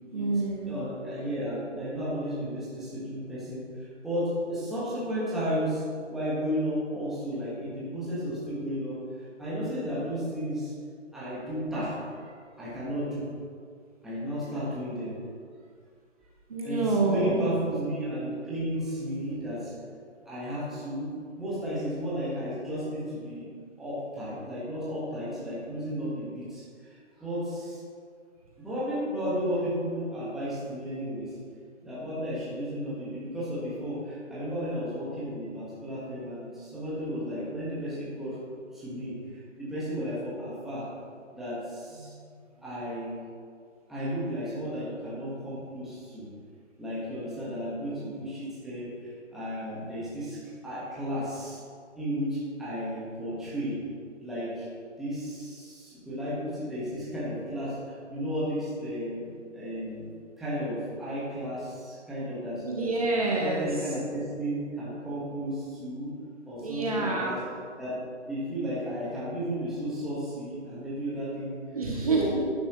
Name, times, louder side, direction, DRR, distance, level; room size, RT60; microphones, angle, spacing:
voice 1, 0.1-0.8 16.5-17.6 62.6-63.8 66.6-67.4 71.7-72.4, right 3 dB, 30° right, -2 dB, 1.0 m, -27 dB
voice 2, 0.7-10.7 11.1-13.3 14.0-15.2 16.6-19.7 20.2-23.5 23.8-27.8 28.6-31.3 31.8-38.4 38.7-40.9 41.3-42.3 42.6-43.2 43.9-46.3 46.8-51.6 51.9-53.8 54.2-54.7 55.0-59.2 59.5-60.0 60.4-62.6 63.1-66.1 66.4-67.4 67.8-67.9 68.3-71.6 72.1-72.4, equal, ahead, -10 dB, 1.3 m, -33 dB
11.0 x 10.5 x 3.0 m, 2.1 s
figure-of-eight pair, 160°, 37 cm